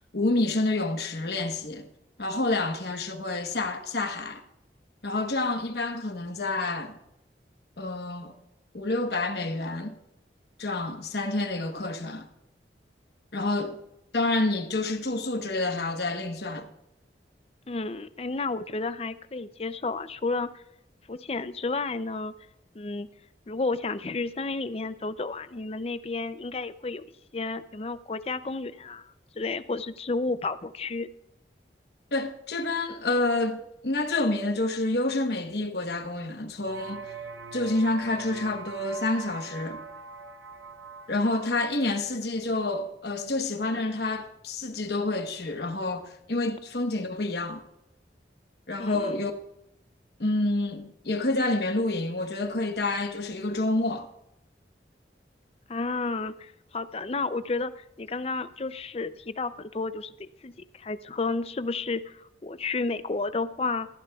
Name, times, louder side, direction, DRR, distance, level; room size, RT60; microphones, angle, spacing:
voice 1, 0.0-1.9 2.2-4.4 5.0-7.0 7.8-8.3 8.7-10.0 10.6-12.3 13.3-13.8 14.1-16.7 32.1-37.1 37.5-39.8 41.1-47.6 48.7-49.3 50.2-54.1, left 2 dB, 65° left, 1.1 m, -28 dB
voice 2, 17.7-20.6 21.1-22.3 22.7-23.1 23.5-27.0 27.3-31.1 48.8-49.2 55.7-63.9, left 3 dB, 35° left, 0.5 m, -32 dB
sound 1, 36.6-41.7, right 5 dB, 85° right, 0.9 m, -42 dB
18.5 x 14.0 x 2.4 m
head